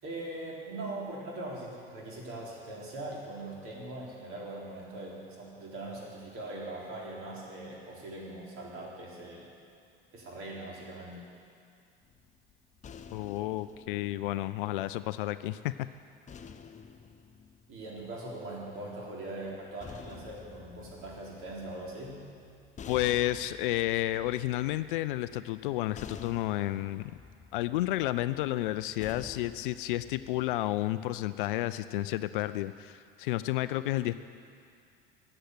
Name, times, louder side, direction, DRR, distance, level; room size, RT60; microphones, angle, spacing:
voice 1, 0.0-9.5 10.1-11.3 17.7-22.2, right 2 dB, 45° right, -4 dB, 4.1 m, -41 dB
sound 1, 12.0-15.3 16.3-18.5 19.5-30.6, left 6 dB, 25° left, 0.8 m, -50 dB
voice 2, 13.1-15.7 22.9-27.1 27.5-34.2, left 15 dB, 60° left, 14 dB, 0.5 m, -31 dB
14.0 x 8.9 x 8.1 m, 2.3 s
figure-of-eight pair, 70°, 29 cm